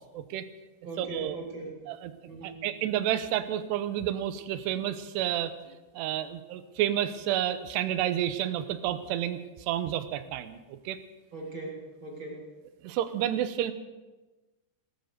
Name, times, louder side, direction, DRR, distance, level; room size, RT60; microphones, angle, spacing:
voice 1, 0.1-0.5 1.0-1.4 1.9-2.1 2.4-5.5 5.9-11.0 12.8-13.7, right 11 dB, 80° right, 11 dB, 2.9 m, -30 dB
voice 2, 0.8-1.7 2.3-2.6 11.3-12.5, right 2 dB, 30° right, -3 dB, 4.0 m, -40 dB
19.5 x 10.5 x 6.7 m, 1.2 s
omnidirectional pair, 5.1 m